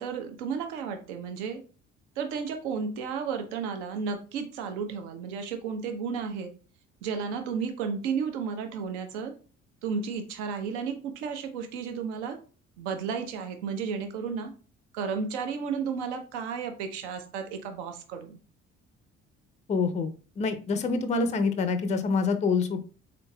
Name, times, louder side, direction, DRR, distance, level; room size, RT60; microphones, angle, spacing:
voice 1, 0.0-1.6 2.2-6.5 7.0-9.3 9.8-12.4 12.8-14.5 14.9-18.4, right 6 dB, 65° right, 6 dB, 0.8 m, -33 dB
voice 2, 19.7-20.1 20.4-22.8, left 4 dB, 20° left, 9 dB, 0.5 m, -26 dB
3.9 x 3.8 x 2.2 m, 0.38 s
figure-of-eight pair, 50°, 37 cm